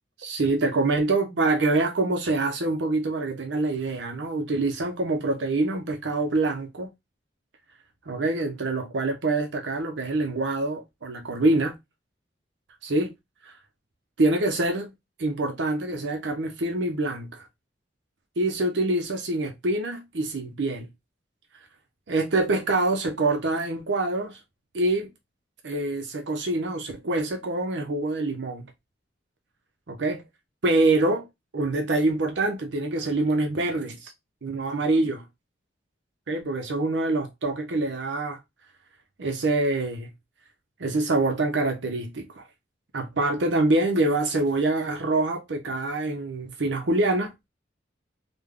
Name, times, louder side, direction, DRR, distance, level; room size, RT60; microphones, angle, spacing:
voice 1, 0.2-6.9 8.1-11.8 12.8-13.1 13.4-13.5 14.2-14.9 15.2-17.5 18.4-20.9 22.1-24.4 24.7-25.1 25.6-28.7 29.9-30.2 30.6-31.3 31.5-34.1 34.4-35.2 36.3-38.4 39.2-40.1 40.8-42.4 42.9-47.3, right 2 dB, 75° right, 0.6 m, -25 dB
3.4 x 2.2 x 3.5 m
head